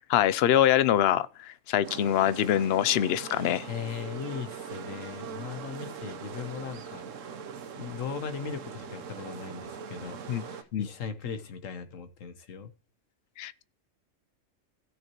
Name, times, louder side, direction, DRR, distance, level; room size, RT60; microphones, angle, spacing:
voice 1, 0.1-3.7 10.3-10.4 10.7-10.9 13.4-13.6, left 11 dB, 60° left, 0.7 m, -24 dB
sound 1, 1.8-10.6, right 6 dB, 75° right, 1.2 m, -41 dB
voice 2, 3.7-7.0 7.8-12.7, left 7 dB, 80° left, 1.4 m, -38 dB
16.5 x 6.5 x 3.0 m
omnidirectional pair, 1.3 m